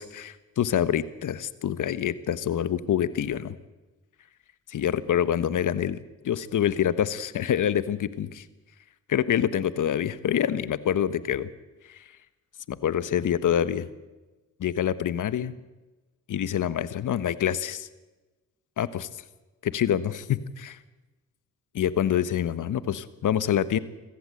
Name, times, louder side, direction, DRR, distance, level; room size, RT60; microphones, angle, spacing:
voice 1, 0.0-3.6 4.7-8.4 9.1-11.5 11.9-12.0 12.7-13.9 14.6-15.5 16.3-17.9 18.8-19.1 19.6-20.8 21.7-23.8, left 9 dB, 65° left, 15 dB, 1.3 m, -26 dB
23.5 x 15.0 x 7.9 m, 1.1 s
supercardioid pair, 55°, 33 cm